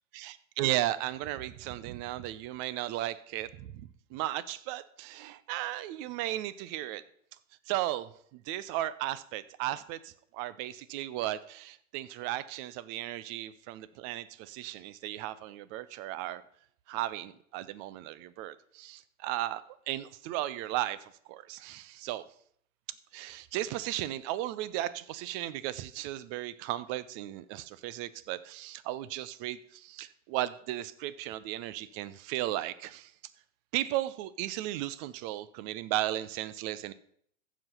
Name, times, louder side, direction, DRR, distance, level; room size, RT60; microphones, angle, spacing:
voice 1, 0.1-7.0 7.7-16.4 16.9-22.2 23.1-33.1 33.7-36.9, right 14 dB, 40° right, 17 dB, 0.7 m, -35 dB
14.5 x 5.1 x 5.7 m, 0.65 s
hypercardioid pair, 100°, 40 cm